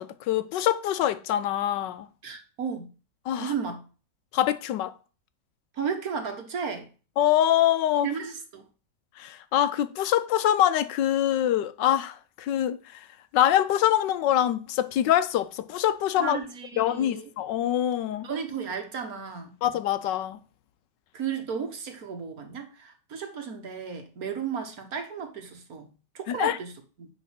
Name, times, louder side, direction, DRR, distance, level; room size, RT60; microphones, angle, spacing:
voice 1, 0.0-2.1 3.3-3.5 4.3-4.9 7.2-8.1 9.2-13.0 13.3-16.4 16.8-18.3 19.6-20.4 26.3-26.6, left 11 dB, 80° left, 1.4 m, -24 dB
voice 2, 2.2-2.9 3.4-3.8 5.7-6.9 8.0-8.7 16.2-17.3 18.2-19.6 21.1-27.1, right 6 dB, 55° right, 1.8 m, -34 dB
9.8 x 4.2 x 5.9 m
omnidirectional pair, 1.9 m